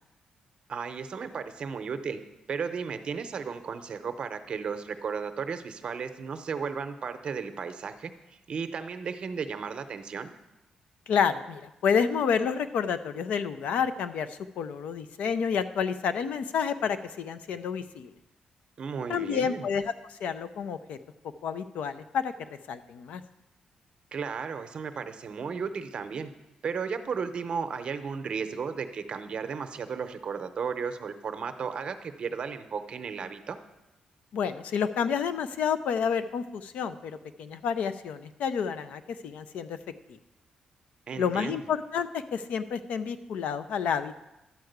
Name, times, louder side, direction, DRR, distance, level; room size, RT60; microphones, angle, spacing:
voice 1, 0.7-2.2 2.5-10.3 18.8-19.6 24.1-26.3 26.6-33.6 41.1-41.6, right 6 dB, 45° right, 8 dB, 0.7 m, -34 dB
voice 2, 11.1-18.1 19.1-21.0 21.4-22.3 22.7-23.2 34.3-39.8 41.2-44.2, left 7 dB, 85° left, 11 dB, 0.6 m, -29 dB
11.5 x 4.8 x 8.0 m, 0.97 s
wide cardioid pair, 145°, 2 cm